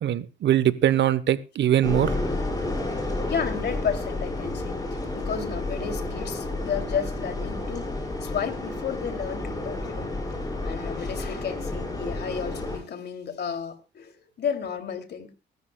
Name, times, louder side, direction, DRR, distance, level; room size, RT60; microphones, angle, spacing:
voice 1, 0.0-2.2, right 11 dB, 65° right, 1.0 m, -22 dB
sound 1, 1.8-12.8, left 2 dB, 20° left, 5.8 m, -31 dB
voice 2, 3.3-7.9 8.2-10.1 10.6-15.3, left 7 dB, 60° left, 2.8 m, -32 dB
23.5 x 12.5 x 2.3 m
cardioid pair, 90°, 20 cm